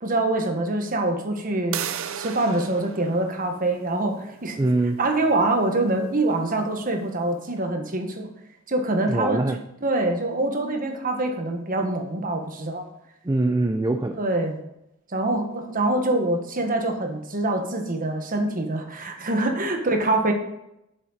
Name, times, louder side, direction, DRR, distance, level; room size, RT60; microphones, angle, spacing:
voice 1, 0.0-1.8 2.1-4.6 5.0-8.3 8.7-9.4 9.8-12.9 14.1-14.6 15.1-20.3, right 2 dB, 40° right, 4 dB, 1.3 m, -25 dB
sound 1, 1.7-7.3, right 9 dB, 70° right, 0.6 m, -38 dB
voice 2, 4.6-5.0 9.0-9.6 13.2-14.2 19.2-19.3, right 2 dB, 20° right, 6 dB, 0.5 m, -23 dB
7.7 x 7.4 x 4.1 m, 0.84 s
head